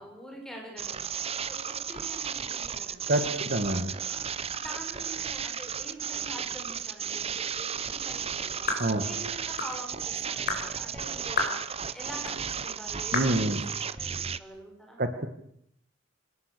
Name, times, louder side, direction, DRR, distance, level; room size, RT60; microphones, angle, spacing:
voice 1, 0.0-3.4 3.7-15.1, equal, 5° left, 0 dB, 7.4 m, -46 dB
sound 1, 0.8-14.4, right 7 dB, 30° right, 0.8 m, -34 dB
voice 2, 3.1-3.9 8.8-9.0 13.1-13.7 15.0-15.3, right 1 dB, 50° right, 8 dB, 1.8 m, -27 dB
sound 2, 8.7-8.9 9.6-9.8 10.5-10.7 11.4-11.6 12.3-12.4 13.1-13.4, left 3 dB, 50° left, 5.3 m, -29 dB
26.5 x 18.5 x 6.9 m, 0.71 s
head